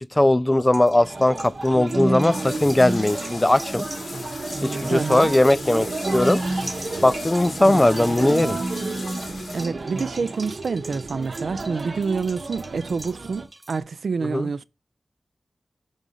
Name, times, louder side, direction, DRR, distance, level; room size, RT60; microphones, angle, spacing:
voice 1, 0.2-3.9 4.6-6.4 7.0-8.6 14.2-14.5, left 1 dB, 20° left, 0.3 m, -19 dB
sound 1, 0.6-13.8, right 2 dB, 35° right, 1.0 m, -43 dB
sound 2, 0.9-13.5, right 2 dB, 65° right, 0.9 m, -30 dB
sound 3, 2.3-9.7, left 3 dB, 80° left, 1.0 m, -39 dB
voice 2, 4.8-5.3 7.6-7.9 9.5-14.6, right 5 dB, 85° right, 0.3 m, -27 dB
6.2 x 3.8 x 5.4 m
wide cardioid pair, 115°, 0 cm